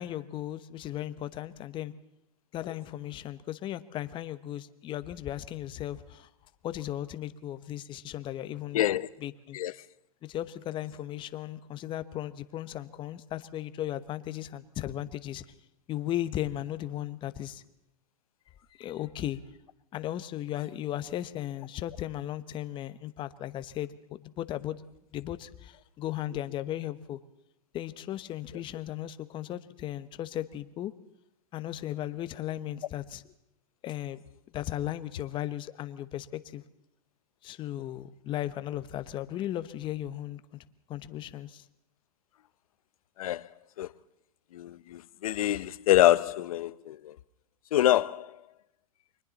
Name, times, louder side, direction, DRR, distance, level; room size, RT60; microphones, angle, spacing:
voice 1, 0.0-1.9 2.5-6.3 6.6-8.8 9.2-9.6 10.2-15.4 15.9-17.6 18.8-19.4 19.9-24.8 25.1-27.2 27.7-30.9 31.5-33.2 33.8-34.2 34.5-36.6 37.4-40.6 40.9-41.6, left 13 dB, 25° left, 1.0 m, -36 dB
voice 2, 8.7-9.1 9.5-9.7 43.2-43.5 43.8-43.9 44.5-47.1 47.7-48.3, left 13 dB, 75° left, 0.9 m, -25 dB
29.5 x 23.5 x 4.1 m
hypercardioid pair, 140°, 18 cm